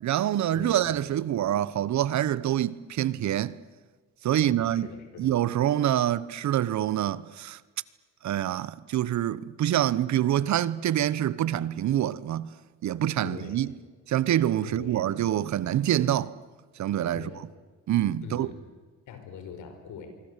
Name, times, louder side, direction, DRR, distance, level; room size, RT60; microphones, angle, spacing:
voice 1, 0.0-3.6 4.2-4.9 5.2-7.6 8.2-12.5 12.8-13.7 14.1-16.3 16.8-17.3 17.9-18.5, right 12 dB, 65° right, 1.0 m, -26 dB
voice 2, 0.5-1.1 4.4-5.4 13.2-13.7 14.6-15.0 17.1-17.5 18.2-18.6 19.1-20.2, left 6 dB, 80° left, 5.3 m, -43 dB
25.5 x 24.5 x 8.3 m
cardioid pair, 90°, 30 cm